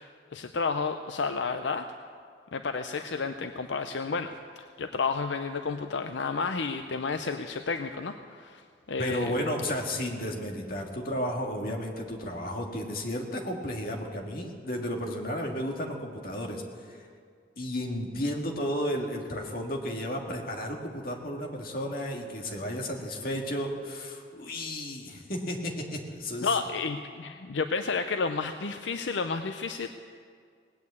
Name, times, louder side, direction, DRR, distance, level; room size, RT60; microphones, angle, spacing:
voice 1, 0.0-1.9 2.5-9.3 26.4-29.9, left 4 dB, 80° left, 8 dB, 0.6 m, -31 dB
voice 2, 9.0-17.1 17.6-26.6, equal, 50° left, 2 dB, 1.9 m, -33 dB
19.0 x 8.7 x 8.3 m, 2.1 s
head